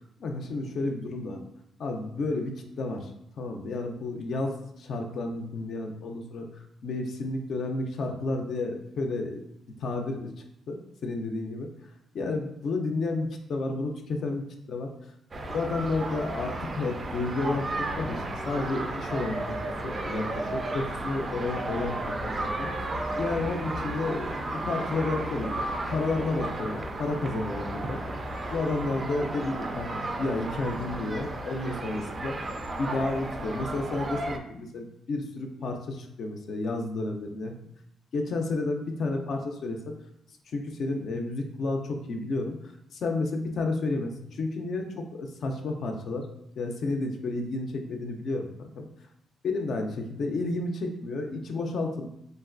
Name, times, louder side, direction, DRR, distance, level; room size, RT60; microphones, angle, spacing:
voice 1, 0.2-1.4 1.8-3.1 3.4-6.5 6.8-9.4 9.8-10.3 10.7-11.7 12.1-14.9 15.5-19.5 19.8-22.0 22.2-24.4 24.7-25.6 25.9-28.0 28.5-32.3 32.8-37.5 38.1-39.9 40.5-42.6 42.9-46.3 46.6-48.9 49.4-52.1, left 2 dB, 60° left, 3 dB, 0.4 m, -31 dB
sound 1, 15.3-34.4, right 2 dB, 35° right, 0.3 m, -33 dB
3.1 x 2.5 x 2.4 m, 0.76 s
cardioid pair, 90°, 0 cm